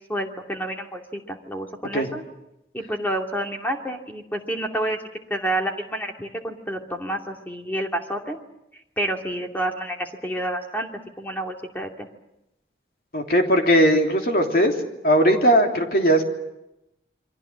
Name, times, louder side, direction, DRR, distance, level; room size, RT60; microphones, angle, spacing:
voice 1, 0.1-2.2 2.7-5.0 5.3-8.4 9.0-10.9 11.2-12.1, right 1 dB, 10° left, 2 dB, 2.5 m, -29 dB
voice 2, 13.1-14.7 15.0-16.2, equal, 55° left, 2 dB, 3.3 m, -18 dB
28.5 x 23.5 x 7.6 m, 0.89 s
head